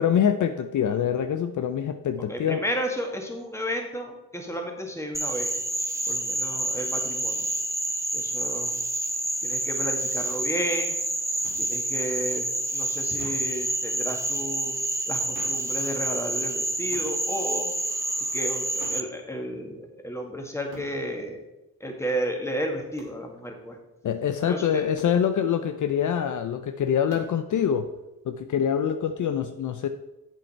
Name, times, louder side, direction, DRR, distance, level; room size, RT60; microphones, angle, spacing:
voice 1, 0.0-2.6 24.0-27.9 28.3-29.9, left 8 dB, 55° left, 8 dB, 0.6 m, -25 dB
voice 2, 2.3-5.5 6.1-7.5 8.1-8.8 9.4-11.0 11.6-12.5 12.7-14.8 15.1-17.7 18.3-21.4 21.8-23.8 24.4-24.8, equal, 10° left, 2 dB, 1.9 m, -32 dB
Frog, 5.1-19.0, right 1 dB, 10° right, 0.8 m, -28 dB
sound 1, 11.4-11.6 13.2-13.5 15.3-15.7 16.9-17.1 18.8-19.1 20.7-20.9 23.0-23.2 25.0-25.2 27.1-27.4, right 3 dB, 85° right, 2.3 m, -44 dB
7.9 x 7.7 x 4.4 m, 1.0 s
cardioid pair, 75°, 36 cm